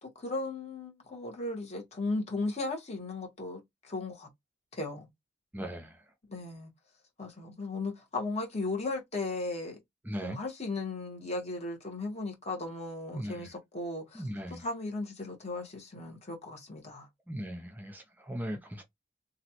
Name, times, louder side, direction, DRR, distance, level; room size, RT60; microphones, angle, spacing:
voice 1, 0.0-4.3 4.7-5.1 6.3-6.7 7.2-9.8 10.2-17.1, left 2 dB, 35° left, 1.2 m, -36 dB
voice 2, 5.5-6.0 10.1-10.4 13.1-13.5 14.1-14.6 17.3-18.8, equal, 10° right, 0.5 m, -38 dB
3.0 x 2.5 x 2.8 m
head